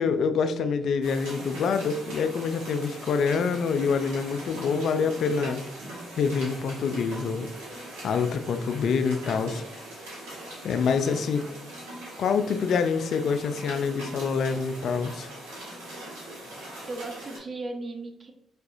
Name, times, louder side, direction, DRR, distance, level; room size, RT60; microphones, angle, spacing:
voice 1, 0.0-5.6 6.2-7.5 8.0-9.6 10.6-11.5 12.2-15.3, left 5 dB, 65° left, 9 dB, 0.3 m, -26 dB
sound 1, 1.0-17.4, right 1 dB, 80° right, 1.4 m, -41 dB
voice 2, 16.9-18.3, right 2 dB, 45° right, 4 dB, 0.8 m, -37 dB
4.7 x 3.3 x 2.6 m, 0.79 s
hypercardioid pair, 45°, 0 cm